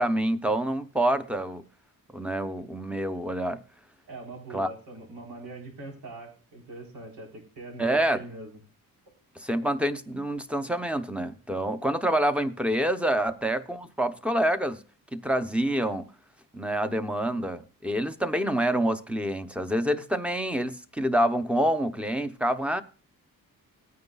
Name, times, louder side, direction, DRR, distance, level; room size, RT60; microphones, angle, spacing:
voice 1, 0.0-1.6 2.1-3.6 4.5-4.7 7.8-8.2 9.4-14.8 15.1-16.1 16.5-22.8, right 1 dB, 5° right, 0.7 m, -27 dB
voice 2, 4.1-8.5, right 2 dB, 90° right, 4.1 m, -42 dB
18.0 x 9.4 x 2.3 m
cardioid pair, 130°, 35 cm